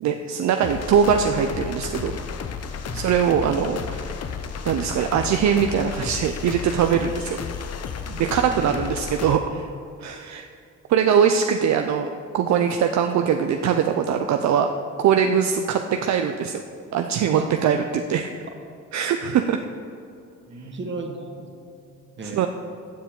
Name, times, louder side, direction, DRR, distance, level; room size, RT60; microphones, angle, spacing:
voice 1, 0.0-2.1 2.9-4.1 4.6-7.4 8.2-9.7 10.0-10.5 10.9-12.1 12.3-14.7 15.0-16.6 16.9-18.3 18.9-19.6 22.2-22.5, right 7 dB, 65° right, 6 dB, 0.6 m, -22 dB
sound 1, 0.6-9.4, left 6 dB, 55° left, 0.8 m, -33 dB
voice 2, 20.5-21.5 22.2-22.5, right 3 dB, 40° right, 3 dB, 1.6 m, -34 dB
14.5 x 7.1 x 3.7 m, 2.6 s
cardioid pair, 90°, 30 cm